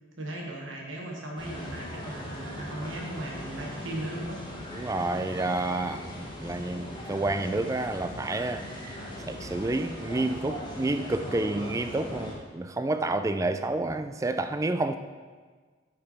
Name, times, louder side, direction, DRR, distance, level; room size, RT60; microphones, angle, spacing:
voice 1, 0.2-4.4, right 1 dB, 75° right, -2 dB, 1.2 m, -37 dB
sound 1, 1.4-12.3, left 1 dB, 25° left, 1.6 m, -39 dB
voice 2, 4.7-8.7 9.3-15.0, right 2 dB, 15° right, 8 dB, 0.3 m, -29 dB
8.3 x 5.4 x 4.1 m, 1.5 s
head